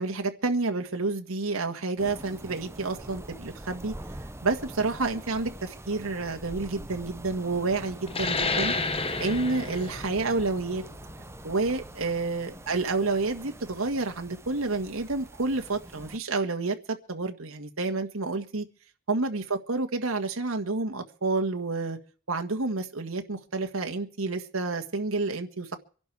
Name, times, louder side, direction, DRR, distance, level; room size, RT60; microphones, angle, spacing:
voice 1, 0.0-3.9 4.4-8.7 9.2-10.8 11.4-18.6 19.1-22.0 22.3-25.8, right 3 dB, 85° right, 4 dB, 1.7 m, -29 dB
sound 1, 2.0-16.2, right 1 dB, 15° right, 0.9 m, -44 dB
sound 2, 8.1-13.2, left 3 dB, 30° left, 1.2 m, -32 dB
24.5 x 11.5 x 4.8 m, 0.42 s
head